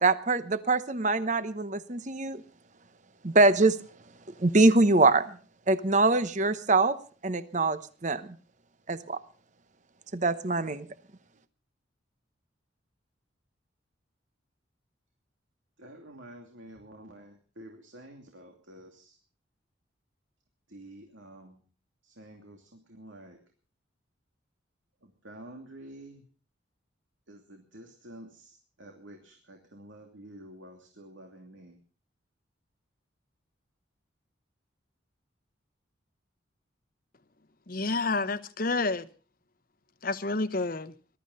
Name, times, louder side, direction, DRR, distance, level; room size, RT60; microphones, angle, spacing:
voice 1, 0.0-2.4 3.2-3.8 4.4-5.3 5.7-7.0 7.2-8.2 8.9-9.2 10.1-10.9, right 3 dB, 40° right, 0.9 m, -24 dB
voice 2, 15.8-19.2 20.7-21.6 22.0-23.4 25.0-26.2 27.3-31.8, right 1 dB, 75° right, 2.8 m, -49 dB
voice 3, 37.7-39.1 40.0-40.9, left 3 dB, 45° left, 1.0 m, -29 dB
21.0 x 12.5 x 5.5 m
head